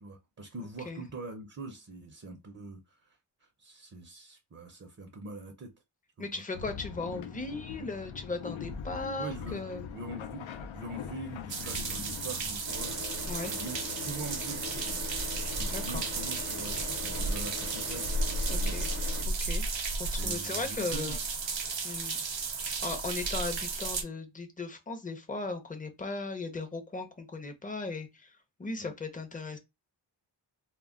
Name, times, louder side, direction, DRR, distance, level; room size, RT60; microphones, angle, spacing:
voice 1, 0.0-5.7 6.2-6.4 9.2-9.6 9.9-13.0 13.4-15.0 15.6-18.1 18.6-18.8 20.2-21.2 28.8-28.9, right 2 dB, 35° right, 0.5 m, -43 dB
voice 2, 6.2-9.9 13.3-13.5 15.7-16.0 18.5-18.9 19.3-19.6 20.0-21.2 21.8-22.2 22.6-29.6, left 3 dB, 20° left, 0.5 m, -37 dB
sound 1, 6.5-12.9, left 7 dB, 85° left, 0.5 m, -42 dB
sound 2, 11.5-24.0, right 3 dB, 70° right, 0.7 m, -33 dB
Car / Idling, 12.7-19.2, left 5 dB, 55° left, 0.9 m, -42 dB
2.2 x 2.1 x 3.5 m
wide cardioid pair, 95°, 46 cm